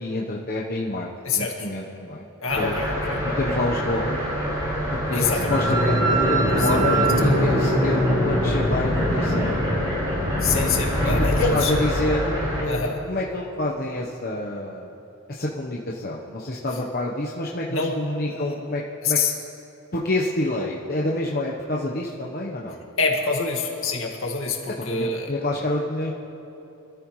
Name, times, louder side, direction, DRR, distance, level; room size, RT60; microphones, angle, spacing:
voice 1, 0.0-2.3 2.5-2.8 3.2-4.2 5.1-9.6 9.8-10.1 11.2-14.9 15.3-19.2 19.9-22.8 24.8-26.1, left 1 dB, 45° left, -2 dB, 1.0 m, -28 dB
voice 2, 1.3-1.7 2.4-3.2 5.1-5.6 6.2-7.0 7.6-7.7 10.4-11.7 12.7-13.0 17.7-17.9 18.3-18.6 19.0-19.3 23.0-25.3, left 4 dB, 65° left, 1 dB, 1.9 m, -26 dB
sound 1, 2.5-12.6, equal, 20° right, 4.3 m, -23 dB
26.0 x 14.0 x 3.2 m, 2.9 s
head